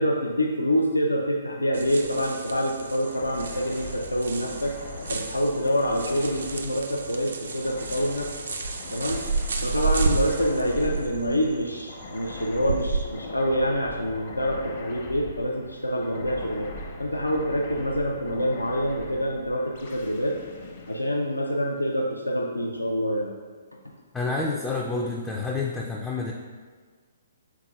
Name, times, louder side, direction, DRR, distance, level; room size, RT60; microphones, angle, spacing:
voice 1, 0.0-4.7 5.1-8.3 8.9-9.2 9.6-16.7 17.0-20.3 20.9-23.3, equal, 85° left, 0 dB, 0.4 m, -26 dB
sound 1, 1.7-13.0, right 4 dB, 65° right, 0.4 m, -32 dB
sound 2, 3.0-21.9, left 2 dB, 50° left, 0.7 m, -41 dB
voice 2, 24.1-26.3, left 3 dB, 10° left, -2 dB, 0.3 m, -28 dB
5.8 x 3.8 x 2.3 m, 1.5 s
figure-of-eight pair, 125°, 0 cm